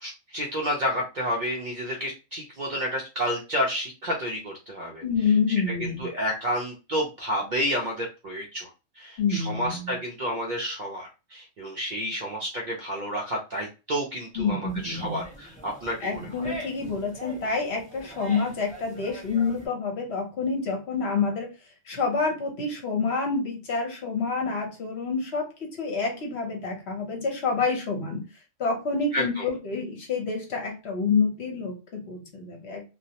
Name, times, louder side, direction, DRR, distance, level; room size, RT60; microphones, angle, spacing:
voice 1, 0.0-5.0 5.8-8.7 9.0-16.3 29.1-29.4, equal, 60° right, -1 dB, 0.5 m, -30 dB
voice 2, 5.0-6.0 9.2-10.0 14.3-15.2 16.0-21.5 21.9-25.5 25.8-28.2 28.6-32.8, left 4 dB, 60° left, 1 dB, 1.0 m, -28 dB
sound 1, 14.7-19.7, right 1 dB, 10° left, 0.4 m, -43 dB
2.4 x 2.0 x 2.7 m, 0.29 s
omnidirectional pair, 1.3 m